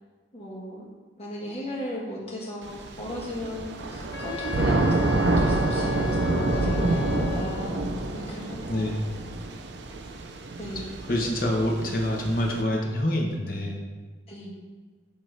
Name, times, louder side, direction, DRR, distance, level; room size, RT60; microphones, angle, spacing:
voice 1, 0.3-0.9 1.2-8.8 9.8-9.9 10.6-10.9 14.3-14.5, equal, 35° left, -4 dB, 1.4 m, -36 dB
Thunder / Rain, 2.7-12.6, right 2 dB, 80° right, 0.6 m, -27 dB
Wind instrument woodwind instrument, 4.1-7.9, left 8 dB, 75° left, 0.5 m, -37 dB
voice 2, 8.7-9.1 11.1-13.8, left 1 dB, 50° left, 0 dB, 1.1 m, -26 dB
8.7 x 3.1 x 4.6 m, 1.4 s
head